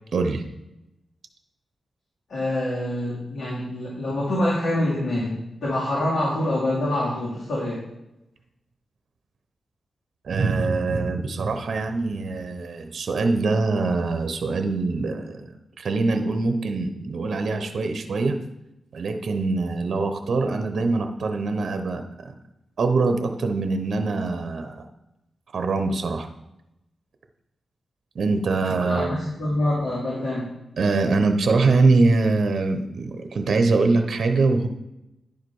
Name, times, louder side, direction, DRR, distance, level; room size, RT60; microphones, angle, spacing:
voice 1, 0.1-0.4 10.2-15.4 15.8-18.4 18.9-22.3 22.8-24.9 25.5-26.3 28.1-29.1 30.8-34.7, right 3 dB, 65° right, 6 dB, 0.8 m, -23 dB
voice 2, 2.3-7.8 28.9-30.5, left 1 dB, 80° left, -8 dB, 2.6 m, -26 dB
10.5 x 4.9 x 4.7 m, 0.89 s
wide cardioid pair, 105°, 0 cm